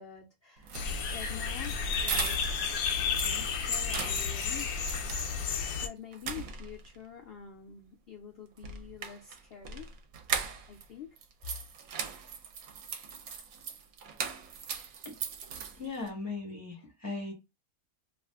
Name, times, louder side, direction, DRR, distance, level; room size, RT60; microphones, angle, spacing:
voice 1, 0.0-2.4 2.7-5.0 5.2-9.9 10.7-11.2, left 8 dB, 65° left, 0.6 m, -47 dB
sound 1, 0.6-2.7 3.0-5.3 5.7-5.8 6.1-7.0 8.6-10.9 11.2-16.1, right 7 dB, 70° right, 1.0 m, -39 dB
sound 2, 0.7-5.9, left 6 dB, 80° left, 1.0 m, -32 dB
voice 2, 15.8-17.3, left 3 dB, 15° right, 0.7 m, -38 dB
2.5 x 2.4 x 3.3 m
omnidirectional pair, 1.5 m